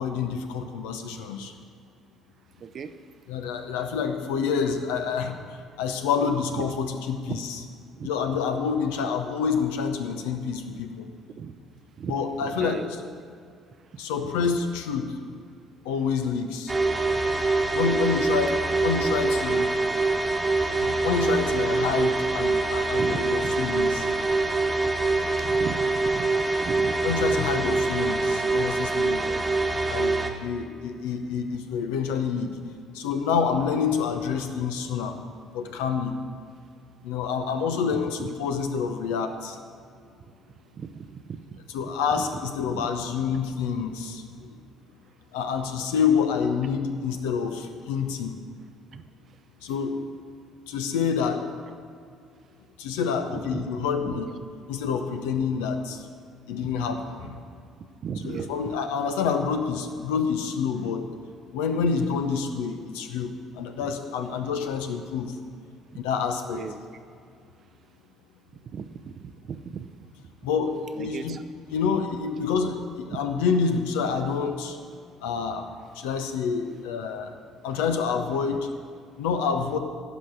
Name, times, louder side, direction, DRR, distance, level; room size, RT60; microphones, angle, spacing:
voice 1, 0.0-1.5 3.3-7.6 8.0-11.1 12.0-12.8 14.0-15.1 15.8-16.7 17.7-19.7 20.8-24.1 27.0-29.2 29.9-30.1 30.4-32.5 32.9-35.2 35.5-36.1 37.0-39.6 41.7-44.5 45.3-48.4 49.6-50.0 50.7-51.4 52.8-54.3 54.7-56.1 56.5-57.4 58.2-61.1 61.5-65.4 65.9-66.6 70.4-71.3 71.7-74.8 75.2-75.7 75.9-77.3 77.6-78.7 79.2-79.8, left 6 dB, 75° left, 6 dB, 0.8 m, -27 dB
voice 2, 2.6-3.0 7.3-7.4 8.0-8.1 11.4-11.5 12.0-12.9 23.0-23.5 24.8-24.9 25.4-27.1 29.2-29.4 37.9-38.3 40.7-41.6 42.1-42.2 42.7-42.8 48.9-49.0 53.3-53.7 54.1-54.2 56.6-56.7 57.8-58.5 66.5-66.8 68.7-69.9 71.0-71.4 78.5-78.6, right 7 dB, 50° right, 11 dB, 0.6 m, -36 dB
sound 1, 16.7-30.3, right 3 dB, 20° right, 1.2 m, -24 dB
11.5 x 5.1 x 7.8 m, 2.3 s
figure-of-eight pair, 50°, 0 cm